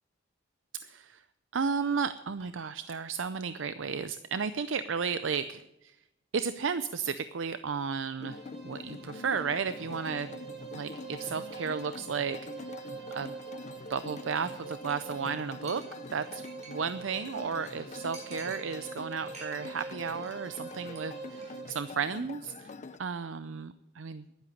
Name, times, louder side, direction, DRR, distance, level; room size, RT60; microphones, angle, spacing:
voice 1, 0.8-1.2 1.5-6.0 6.3-10.4 10.7-12.8 13.1-13.3 13.9-15.8 16.1-24.3, right 6 dB, 85° right, 12 dB, 0.6 m, -34 dB
sound 1, 8.2-23.0, left 4 dB, 40° left, 0.5 m, -45 dB
sound 2, 8.2-21.9, right 6 dB, 60° right, 2.6 m, -45 dB
Chink clink, 14.9-15.1 15.3-15.4 15.7-17.0 17.3-17.4 17.6-17.7 18.1-19.0 19.3-19.8 20.1-20.4 20.7-21.0 21.3-21.5, right 3 dB, 40° right, 5.3 m, -49 dB
11.5 x 10.5 x 9.8 m, 0.92 s
head